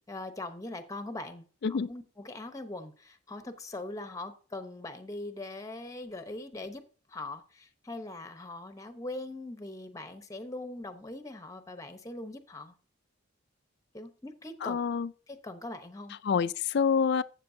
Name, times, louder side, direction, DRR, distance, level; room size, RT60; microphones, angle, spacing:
voice 1, 0.1-6.8 7.1-12.7 13.9-14.8 15.3-16.2, left 2 dB, 15° left, 0.8 m, -41 dB
voice 2, 14.6-15.1 16.2-17.2, left 6 dB, 55° left, 0.4 m, -27 dB
12.5 x 7.6 x 2.7 m
head